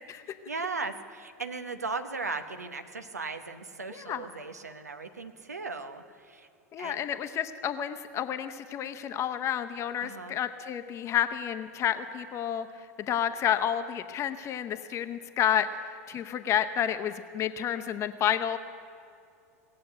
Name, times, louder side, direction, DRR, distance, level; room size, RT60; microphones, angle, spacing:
voice 1, 0.5-6.5 6.8-7.0 10.0-10.4, right 4 dB, 85° right, 9 dB, 0.8 m, -37 dB
voice 2, 3.9-4.2 6.7-18.6, left 9 dB, 35° left, 10 dB, 0.8 m, -30 dB
18.5 x 7.6 x 8.1 m, 2.4 s
figure-of-eight pair, 90°, 8 cm